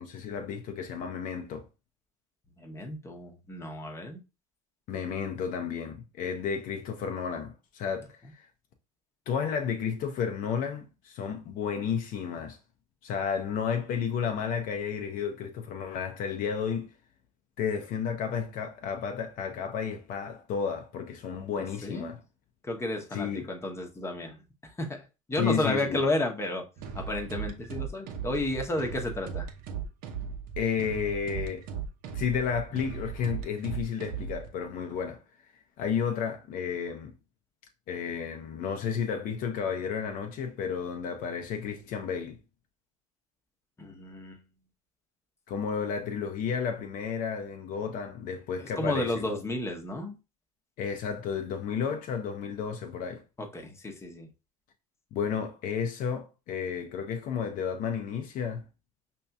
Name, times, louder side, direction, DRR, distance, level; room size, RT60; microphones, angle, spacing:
voice 1, 0.0-1.6 4.9-8.4 9.3-12.6 13.0-16.9 17.6-22.2 23.1-23.5 25.4-26.0 30.6-31.6 32.1-35.2 35.8-37.1 37.9-42.4 45.5-49.2 50.8-53.2 55.1-58.6, left 7 dB, 50° left, 0.6 m, -32 dB
voice 2, 2.6-4.2 21.6-22.1 22.6-26.6 26.9-29.5 43.8-44.4 48.6-50.2 53.4-54.3, left 1 dB, 15° left, 0.9 m, -32 dB
sound 1, 26.8-34.5, right 7 dB, 55° right, 0.7 m, -37 dB
5.2 x 2.8 x 2.3 m
hypercardioid pair, 85°, 18 cm